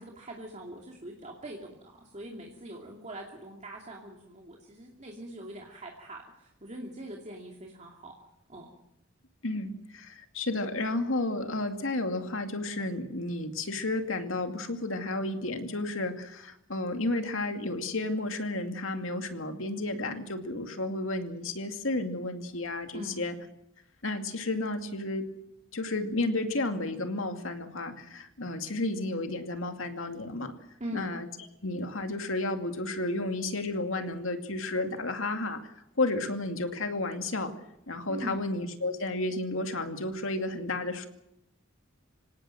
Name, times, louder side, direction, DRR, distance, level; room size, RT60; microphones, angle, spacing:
voice 1, 0.0-8.1 8.5-8.7 22.9-23.2 30.8-31.1 38.1-38.4, right 1 dB, 35° right, -1 dB, 2.7 m, -42 dB
voice 2, 9.4-23.3 24.0-25.3 25.7-30.5 30.9-31.3 31.6-35.6 36.0-37.5 37.9-41.1, left 2 dB, 75° left, 6 dB, 2.4 m, -32 dB
26.5 x 18.0 x 7.6 m, 0.84 s
head